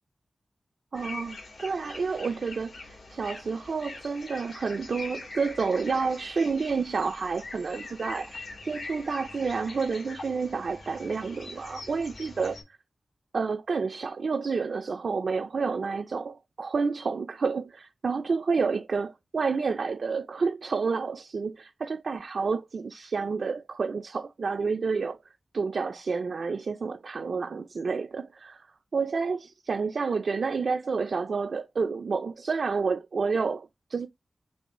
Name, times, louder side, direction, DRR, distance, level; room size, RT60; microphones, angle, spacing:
sound 1, 0.9-12.6, left 3 dB, 90° left, 2.3 m, -43 dB
voice 1, 0.9-12.6 13.3-25.2 25.5-28.7 28.9-34.1, right 4 dB, 70° right, 0.4 m, -29 dB
5.4 x 3.2 x 2.9 m
wide cardioid pair, 100°, 0 cm